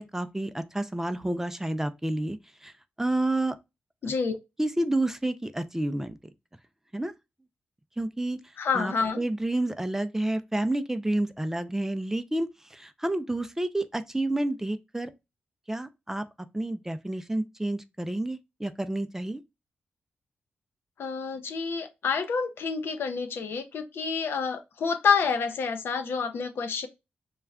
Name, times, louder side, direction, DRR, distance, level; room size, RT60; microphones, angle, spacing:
voice 1, 0.0-2.7 3.0-3.5 4.0-4.1 4.6-6.2 6.9-7.1 8.0-8.4 8.7-15.1 15.7-16.2 16.5-19.4, right 1 dB, 10° right, 0.3 m, -29 dB
voice 2, 4.0-4.4 8.6-9.2 21.0-26.9, left 5 dB, 75° left, 0.5 m, -28 dB
2.3 x 2.1 x 3.4 m
cardioid pair, 65°, 4 cm